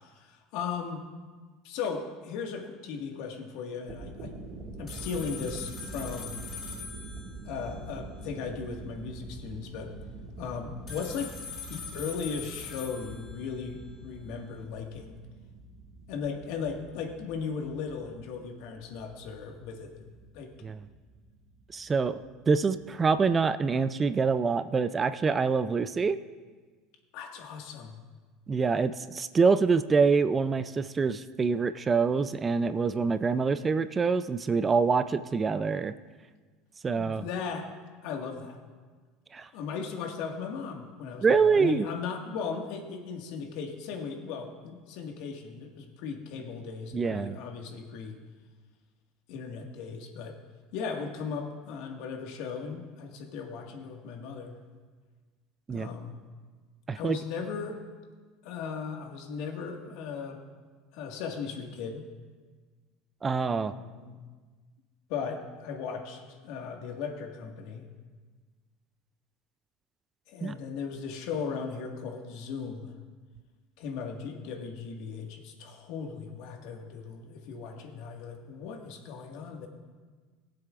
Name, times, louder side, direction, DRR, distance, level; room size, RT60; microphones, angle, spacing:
voice 1, 0.1-1.0 1.6-4.4 4.8-6.4 7.4-9.9 10.4-11.4 11.7-15.2 16.1-19.9 20.3-20.5 27.1-28.0 36.9-37.7 38.0-38.6 39.5-48.2 49.3-50.4 50.7-54.5 55.7-56.2 56.9-57.8 58.4-60.4 60.9-62.0 63.7-64.2 65.1-67.9 70.3-72.9 73.8-79.7, left 5 dB, 70° left, 3 dB, 1.7 m, -37 dB
sound 1, 3.7-23.4, right 2 dB, 45° right, 1.9 m, -46 dB
sound 2, 4.9-7.8 10.9-13.7, left 5 dB, 35° left, 2.2 m, -43 dB
voice 2, 21.7-26.2 28.5-35.9 36.8-37.3 39.3-39.5 41.2-41.8 46.9-47.4 55.7-55.9 56.9-57.2 63.2-63.7 70.4-70.5, right 5 dB, 25° right, 13 dB, 0.4 m, -25 dB
21.5 x 7.7 x 2.5 m, 1.4 s
supercardioid pair, 95°, 0 cm